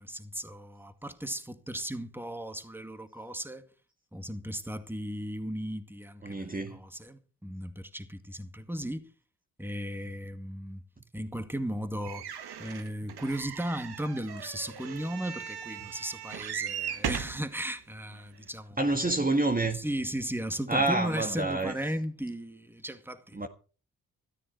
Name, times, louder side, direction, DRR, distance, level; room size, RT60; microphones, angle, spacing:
voice 1, 0.0-3.7 4.1-9.1 9.6-10.8 11.1-12.2 12.6-19.2 19.7-23.4, right 1 dB, 5° right, 2.1 m, -36 dB
voice 2, 6.2-6.8 18.8-19.8 20.7-21.7 23.3-23.5, right 2 dB, 20° right, 1.7 m, -27 dB
sound 1, 12.0-17.4 18.1-18.2 18.5-18.6, right 8 dB, 70° right, 1.6 m, -38 dB
15.0 x 13.0 x 4.7 m
supercardioid pair, 45°, 39 cm